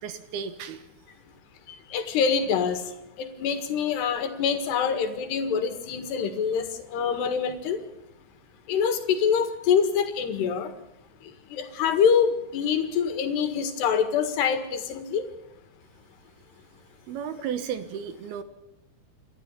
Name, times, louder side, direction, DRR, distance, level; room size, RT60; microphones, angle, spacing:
voice 1, 0.0-0.9 17.1-18.4, right 8 dB, 75° right, 10 dB, 3.0 m, -34 dB
voice 2, 1.7-2.8 3.2-7.8 8.7-10.7 11.5-15.3, left 7 dB, 85° left, 8 dB, 3.9 m, -25 dB
28.5 x 12.5 x 8.3 m, 0.91 s
omnidirectional pair, 4.7 m